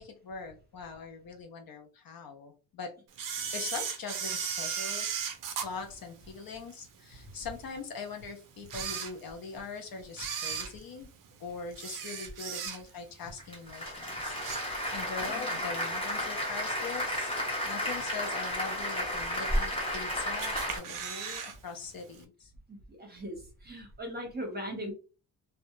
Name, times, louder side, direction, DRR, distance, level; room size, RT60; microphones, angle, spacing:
voice 1, 0.0-2.9 3.4-5.2 5.6-11.1 11.4-17.3 17.6-22.5, left 5 dB, 50° left, 4 dB, 0.5 m, -42 dB
Camera, 3.2-6.7 7.2-7.3 8.0-8.1 8.6-9.6 10.1-13.1 13.5-13.8 14.1-15.2 15.5-15.6 16.5-16.6 17.2-17.6 18.0-18.1 18.3-18.4 18.6-18.7 19.4-20.0 20.4-21.6 21.8-21.9 22.2-22.3, right 7 dB, 45° right, 0.5 m, -36 dB
Applause, 13.4-20.8, equal, 10° left, 1.0 m, -33 dB
voice 2, 22.7-24.9, equal, 20° right, 1 dB, 0.9 m, -39 dB
2.3 x 2.0 x 3.0 m, 0.34 s
cardioid pair, 135°, 46 cm